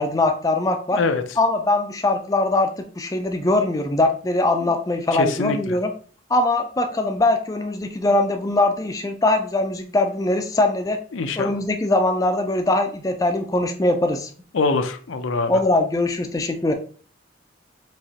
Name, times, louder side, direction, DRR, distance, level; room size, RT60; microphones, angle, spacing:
voice 1, 0.0-1.0 1.4-5.9 6.3-11.0 11.4-14.3 15.5-16.7, left 2 dB, 20° left, 5 dB, 0.4 m, -21 dB
voice 2, 0.9-1.2 4.6-4.7 5.1-5.8 11.1-11.5 14.5-15.5, left 3 dB, 85° left, 8 dB, 0.5 m, -24 dB
4.7 x 3.0 x 2.8 m, 0.42 s
head